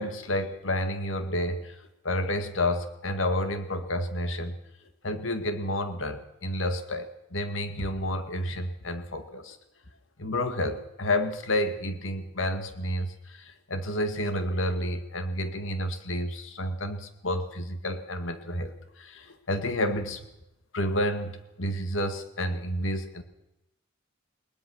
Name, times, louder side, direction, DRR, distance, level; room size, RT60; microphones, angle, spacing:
voice 1, 0.0-1.8 2.0-4.6 5.0-9.6 10.2-20.2 20.7-23.2, left 1 dB, 70° left, 8 dB, 1.9 m, -30 dB
21.0 x 20.5 x 6.2 m, 0.90 s
head